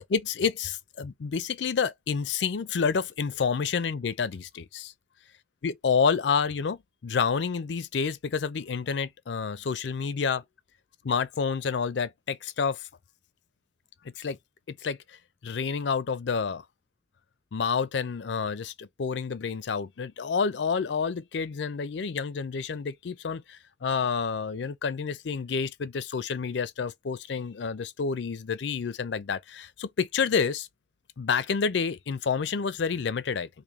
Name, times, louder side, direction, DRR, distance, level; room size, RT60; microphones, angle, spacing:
voice 1, 0.0-4.9 5.6-10.4 11.0-12.8 14.2-14.4 14.7-15.0 15.4-16.6 17.5-30.7 31.2-33.5, left 5 dB, 75° left, 0.5 m, -29 dB
3.2 x 2.6 x 3.5 m
head